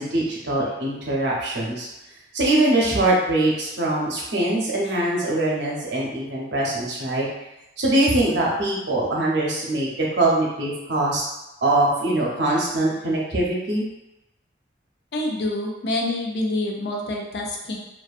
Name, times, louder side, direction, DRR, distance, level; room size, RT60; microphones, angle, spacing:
voice 1, 0.0-1.9 2.3-7.3 7.8-11.2 11.6-13.8, right 2 dB, 70° right, -4 dB, 0.7 m, -22 dB
voice 2, 15.1-17.8, left 1 dB, 60° left, 0 dB, 0.4 m, -27 dB
2.6 x 2.3 x 2.3 m, 0.93 s
head